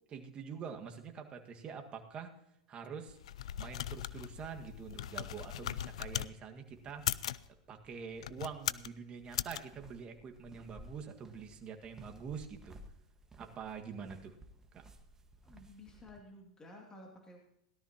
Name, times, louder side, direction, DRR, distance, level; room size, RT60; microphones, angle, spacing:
voice 1, 0.1-2.3 2.7-3.2 3.6-7.0 7.7-12.8 13.4-14.4 14.7-14.8, right 6 dB, 30° right, 4 dB, 1.8 m, -45 dB
sound 1, 3.1-6.3 6.9-7.5 8.1-8.9 9.3-9.6, left 11 dB, 80° left, 0.4 m, -38 dB
sound 2, 6.7-16.2, right 1 dB, 15° right, 1.6 m, -58 dB
voice 2, 15.4-17.4, left 1 dB, 20° left, 0 dB, 2.6 m, -53 dB
17.5 x 12.5 x 2.9 m, 0.82 s
hypercardioid pair, 105°, 3 cm